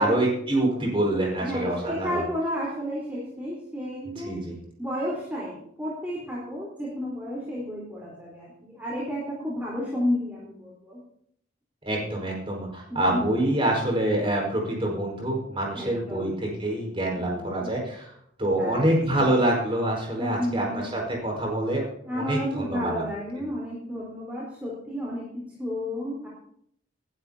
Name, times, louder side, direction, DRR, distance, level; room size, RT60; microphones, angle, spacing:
voice 1, 0.0-2.2 4.1-4.5 11.8-18.1 18.4-21.9 22.1-23.0, right 1 dB, 30° right, -2 dB, 5.0 m, -26 dB
voice 2, 1.4-4.3 4.8-11.0 12.9-13.3 15.8-16.4 17.2-17.7 18.6-18.9 20.2-20.8 22.0-25.2 25.6-26.3, equal, 10° right, -6 dB, 4.2 m, -32 dB
20.5 x 12.0 x 2.9 m, 0.68 s
head